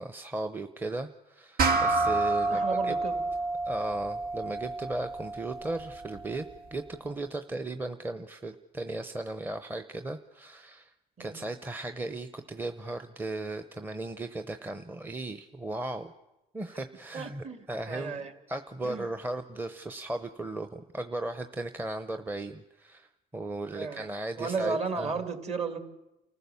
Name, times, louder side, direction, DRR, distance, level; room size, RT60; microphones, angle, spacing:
voice 1, 0.0-2.9 3.6-6.5 6.7-10.9 11.2-16.1 16.5-18.2 18.5-25.1, right 2 dB, 10° right, 9 dB, 0.8 m, -36 dB
sound 1, 1.6-6.4, right 3 dB, 60° right, 2.0 m, -29 dB
voice 2, 2.5-3.2 11.2-11.4 17.1-18.3 18.8-19.1 23.7-24.1 24.4-25.8, right 5 dB, 40° right, 7 dB, 2.4 m, -34 dB
28.5 x 15.0 x 7.0 m, 0.96 s
cardioid pair, 110°, 17 cm